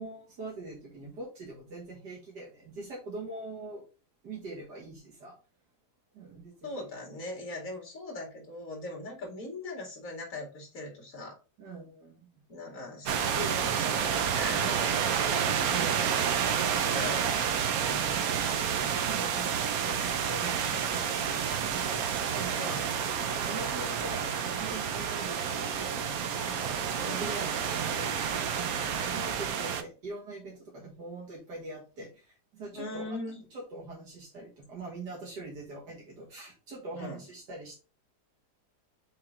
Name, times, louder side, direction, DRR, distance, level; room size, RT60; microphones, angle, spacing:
voice 1, 0.0-3.8 4.2-5.4 6.1-6.8 11.6-12.3 15.2-16.3 16.7-17.2 18.1-18.4 19.1-22.9 23.3-33.0 33.5-37.7, right 3 dB, 90° right, -4 dB, 2.3 m, -43 dB
voice 2, 6.6-11.4 12.5-14.8 16.9-17.3 17.8-18.5 18.8-19.0 22.6-22.8 27.0-27.2 32.7-33.4 36.9-37.2, left 2 dB, 55° left, 0 dB, 2.7 m, -40 dB
sound 1, 13.1-29.8, right 8 dB, 65° right, 1.1 m, -29 dB
sound 2, 19.9-29.5, left 3 dB, 80° left, 2.4 m, -47 dB
6.5 x 3.9 x 3.7 m, 0.32 s
omnidirectional pair, 1.7 m